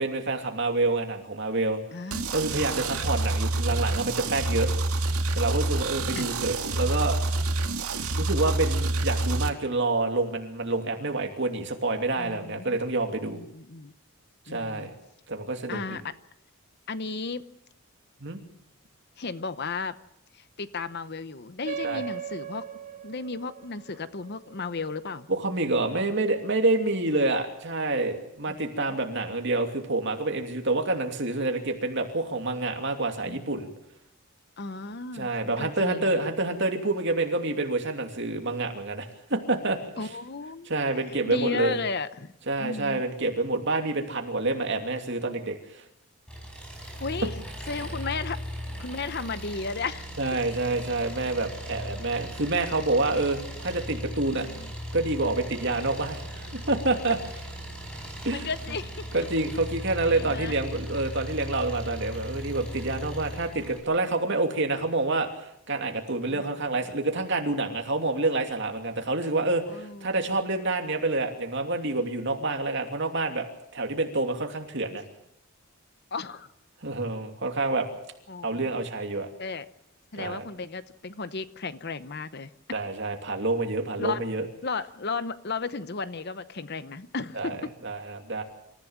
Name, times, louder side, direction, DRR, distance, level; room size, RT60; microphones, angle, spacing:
voice 1, 0.0-1.8 2.3-4.7 5.3-7.2 8.1-13.4 14.5-14.9 15.3-16.0 18.2-18.4 21.8-22.0 25.3-33.7 35.1-40.1 40.7-41.8 42.5-45.8 50.2-54.5 54.9-57.2 58.2-58.5 59.1-73.5 73.7-75.0 76.8-77.9 78.4-79.3 80.2-80.4 82.7-84.5 87.3-87.6 87.8-88.4, right 2 dB, 55° right, 4 dB, 2.8 m, -28 dB
voice 2, 1.9-2.2 2.7-3.0 6.1-6.3 12.2-12.8 13.2-13.9 14.5-14.9 15.7-16.1 16.9-17.5 19.2-19.9 20.3-22.6 23.0-25.3 28.5-28.9 33.2-33.5 34.6-35.3 35.6-36.2 40.0-40.8 41.2-42.3 42.6-43.0 47.0-47.3 47.7-48.4 48.8-50.1 54.3-54.7 58.3-59.0 60.1-60.5 66.3-66.4 69.7-70.1 76.1-76.5 78.3-78.7 79.4-79.7 80.1-82.5 84.0-84.2 84.6-87.7, left 4 dB, 45° left, 13 dB, 0.8 m, -34 dB
sound 1, 2.1-9.5, right 2 dB, 80° right, 1.9 m, -27 dB
sound 2, 21.6-26.6, right 7 dB, 35° right, 1.9 m, -39 dB
Engine, 46.3-63.8, equal, 5° left, 5.2 m, -38 dB
27.0 x 15.0 x 7.3 m, 0.79 s
head